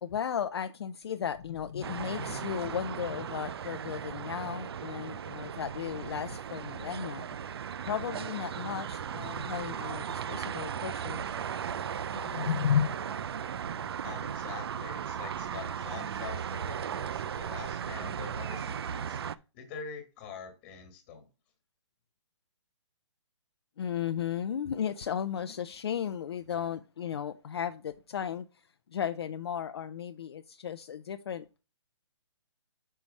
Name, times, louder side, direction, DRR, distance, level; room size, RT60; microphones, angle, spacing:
voice 1, 0.0-7.3 7.9-11.2 12.1-12.9 23.8-28.5 28.9-31.5, left 8 dB, 55° left, 0.5 m, -34 dB
sound 1, 1.8-19.4, right 8 dB, 55° right, 0.4 m, -37 dB
voice 2, 14.0-19.2 19.5-21.3, left 6 dB, 20° left, 1.5 m, -45 dB
5.6 x 4.7 x 5.2 m
hypercardioid pair, 170°, 16 cm